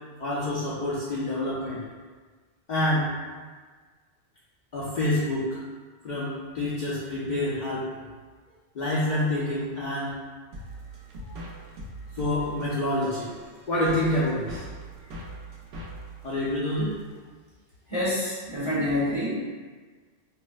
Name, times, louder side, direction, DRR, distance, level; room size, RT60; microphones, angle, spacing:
voice 1, 0.2-1.8 2.7-3.1 4.7-5.6 6.0-7.9 8.7-10.2 11.3-11.4 12.2-13.3 13.7-14.7 16.2-17.0, left 1 dB, 60° left, -8 dB, 0.5 m, -27 dB
sound 1, 10.5-17.2, right 1 dB, 70° right, 0.8 m, -42 dB
voice 2, 17.9-19.3, left 1 dB, 20° right, -10 dB, 0.7 m, -27 dB
3.7 x 2.0 x 2.3 m, 1.5 s
omnidirectional pair, 1.2 m